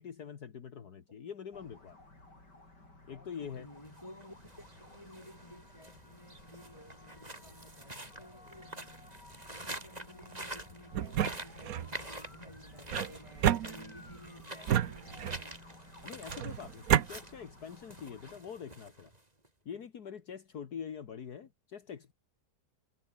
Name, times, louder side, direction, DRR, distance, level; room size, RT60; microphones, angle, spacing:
voice 1, 0.0-2.0 3.1-3.7 16.0-19.1 19.7-22.1, left 7 dB, 65° left, 2.0 m, -44 dB
sound 1, 1.5-18.4, left 2 dB, 80° left, 8.3 m, -56 dB
voice 2, 3.4-9.0 9.4-15.7, left 1 dB, 15° left, 7.0 m, -54 dB
sound 2, 3.7-19.5, right 1 dB, 20° right, 3.9 m, -47 dB
sound 3, 10.9-11.9 12.9-14.2 14.7-15.5 16.3-17.1, right 10 dB, 60° right, 1.2 m, -30 dB
omnidirectional pair, 1.8 m